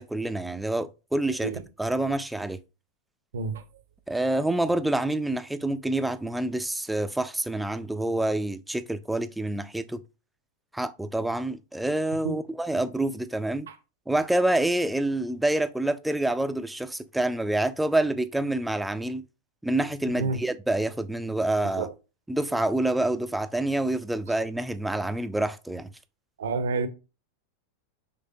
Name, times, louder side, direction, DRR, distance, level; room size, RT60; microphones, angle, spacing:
voice 1, 0.0-1.5 1.8-2.6 4.1-10.0 10.7-13.7 14.1-19.2 19.6-21.9 22.3-25.9, right 1 dB, 5° right, 0.4 m, -27 dB
voice 2, 3.3-3.6 12.2-12.4 13.7-13.8 20.2-20.4 21.6-21.9 26.4-26.9, right 4 dB, 60° right, 0.6 m, -29 dB
5.4 x 3.3 x 2.6 m
figure-of-eight pair, 90°, 0 cm